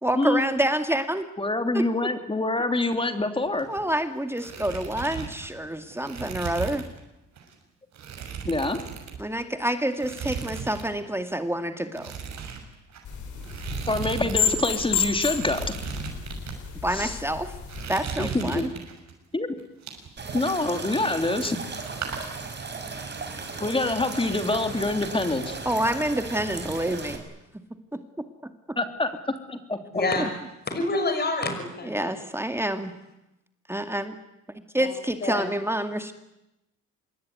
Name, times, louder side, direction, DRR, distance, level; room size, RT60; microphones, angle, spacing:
voice 1, 0.0-1.3 1.7-1.8 3.7-6.8 9.2-12.1 16.8-17.5 17.9-18.7 25.7-27.2 27.9-28.8 31.9-32.9 33.7-34.2 34.7-36.1, right 1 dB, 10° right, 7 dB, 2.2 m, -28 dB
voice 2, 1.4-3.7 8.4-8.8 13.9-15.7 16.9-17.2 18.2-18.6 19.3-19.5 20.3-21.6 23.6-25.6 28.8-30.0, left 2 dB, 15° left, 7 dB, 3.2 m, -26 dB
sound 1, 3.5-4.0 4.3-7.0 7.4-7.5 7.9-9.5 9.9-10.9 11.1-11.4 11.9-14.4 14.6-14.7 15.2-16.6 17.1-17.4 17.7-19.1 19.6-21.5 21.7-22.2, right 6 dB, 65° right, 6.8 m, -36 dB
sound 2, 13.0-17.9, left 7 dB, 75° left, 5.2 m, -31 dB
sound 3, 20.2-27.2, right 4 dB, 35° right, 5.7 m, -36 dB
voice 3, 29.9-30.3 30.7-32.2 34.8-34.9 35.2-35.5, left 2 dB, 35° left, 6 dB, 6.0 m, -27 dB
26.5 x 22.0 x 9.6 m, 0.91 s
cardioid pair, 90°, 30 cm